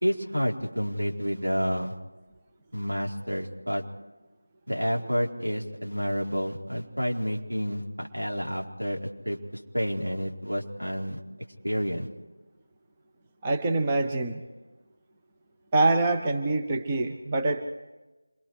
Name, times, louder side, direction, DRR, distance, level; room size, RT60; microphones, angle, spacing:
voice 1, 0.0-1.9 2.7-3.8 4.7-11.2 11.6-12.1, equal, 85° right, -1 dB, 4.2 m, -29 dB
voice 2, 13.4-14.4 15.7-17.6, right 2 dB, 15° right, 2 dB, 1.0 m, -25 dB
27.0 x 22.5 x 4.9 m, 1.1 s
figure-of-eight pair, 170°, 0 cm